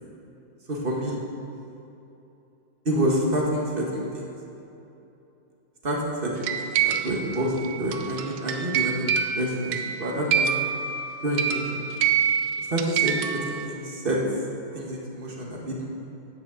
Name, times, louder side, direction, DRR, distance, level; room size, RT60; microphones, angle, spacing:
voice 1, 0.7-1.2 2.8-4.3 5.8-9.1 9.4-10.5 11.2-11.8 12.7-13.1 13.4-14.2 14.7-15.9, right 1 dB, 30° right, -2 dB, 1.5 m, -28 dB
sound 1, 6.4-13.7, right 8 dB, 75° right, 1.2 m, -26 dB
10.0 x 6.3 x 7.8 m, 2.9 s
omnidirectional pair, 2.3 m